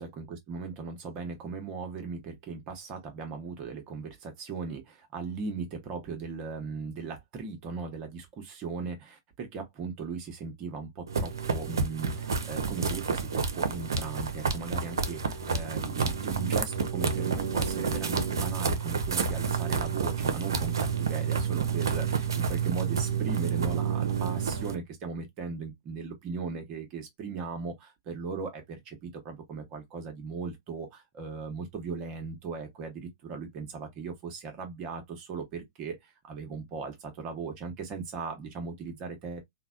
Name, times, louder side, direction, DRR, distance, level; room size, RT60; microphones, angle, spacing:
voice 1, 0.0-39.4, right 4 dB, 40° right, 0.9 m, -38 dB
sound 1, 11.1-24.8, right 6 dB, 80° right, 0.6 m, -29 dB
3.3 x 2.2 x 2.3 m
hypercardioid pair, 110°, 2 cm